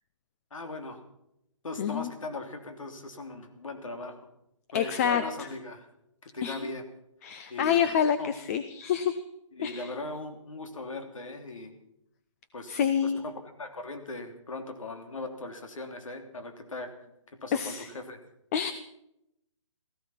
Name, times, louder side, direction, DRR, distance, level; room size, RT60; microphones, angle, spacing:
voice 1, 0.5-1.0 1.6-4.2 4.7-5.9 6.2-6.8 7.5-8.3 9.5-11.7 12.5-12.7 13.0-16.9 17.4-18.2, left 2 dB, 75° left, 7 dB, 3.2 m, -39 dB
voice 2, 1.8-2.1 4.7-5.5 6.4-6.7 7.2-9.2 9.6-9.9 12.7-13.2 17.5-17.9 18.5-18.7, left 8 dB, 30° left, 12 dB, 0.7 m, -27 dB
16.5 x 14.5 x 5.8 m, 0.80 s
hypercardioid pair, 155°, 17 cm